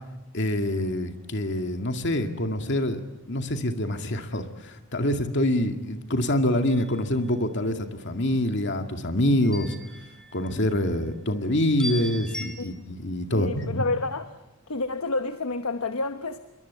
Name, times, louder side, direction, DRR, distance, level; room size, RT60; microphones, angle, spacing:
voice 1, 0.3-3.0 3.3-9.7 10.3-13.9, left 1 dB, 55° left, 2.2 m, -26 dB
sound 1, 6.7-7.3 9.4-10.8 11.8-12.5, equal, 5° left, 4.8 m, -38 dB
voice 2, 13.3-14.3 14.7-16.4, left 3 dB, 80° left, 1.1 m, -29 dB
27.0 x 23.0 x 8.4 m
head